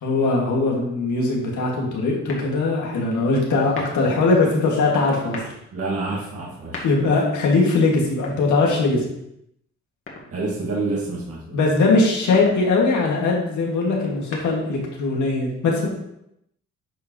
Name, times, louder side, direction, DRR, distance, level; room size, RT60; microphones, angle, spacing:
voice 1, 0.0-5.5 6.8-9.0 11.5-15.9, left 3 dB, 75° left, -1 dB, 2.2 m, -20 dB
sound 1, 2.2-2.9 3.6-4.2 5.1-5.6 6.5-7.3 8.1-9.0 10.1-10.7 12.1-12.7 14.0-14.9, left 2 dB, 45° left, 2.1 m, -38 dB
voice 2, 5.7-6.9 10.3-11.6, right 3 dB, 50° right, -5 dB, 2.1 m, -28 dB
10.0 x 4.9 x 3.1 m, 0.78 s
cardioid pair, 90°, 30 cm